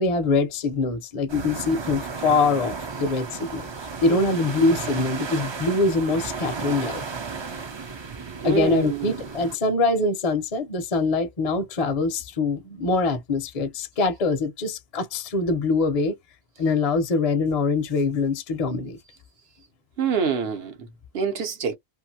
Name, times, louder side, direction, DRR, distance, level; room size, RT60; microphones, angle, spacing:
voice 1, 0.0-3.7 4.0-7.0 8.4-16.1 16.6-19.0, left 3 dB, 40° left, 0.6 m, -23 dB
sound 1, 1.3-9.6, right 5 dB, 35° right, 0.4 m, -34 dB
voice 2, 8.4-9.2 20.0-20.7 21.1-21.7, right 6 dB, 70° right, 1.0 m, -26 dB
2.6 x 2.4 x 2.7 m
omnidirectional pair, 1.1 m